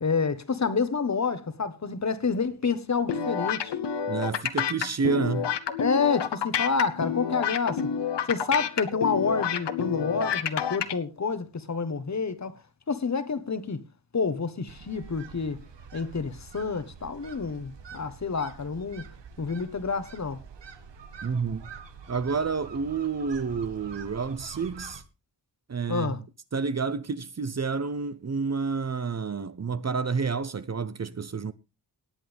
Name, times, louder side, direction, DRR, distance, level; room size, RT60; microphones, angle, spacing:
voice 1, 0.0-3.7 5.8-7.9 8.3-12.5 12.9-13.8 14.1-15.6 15.9-19.0 19.4-20.4 25.9-26.2, left 5 dB, 40° left, 1.4 m, -28 dB
sound 1, 3.1-10.9, left 7 dB, 75° left, 1.1 m, -29 dB
voice 2, 4.1-5.5 21.2-21.6 22.1-25.0 25.7-26.2 26.5-31.5, right 5 dB, 40° right, 0.8 m, -29 dB
sound 2, 14.7-25.0, right 6 dB, 80° right, 1.6 m, -46 dB
19.0 x 8.5 x 3.5 m
wide cardioid pair, 100°, 42 cm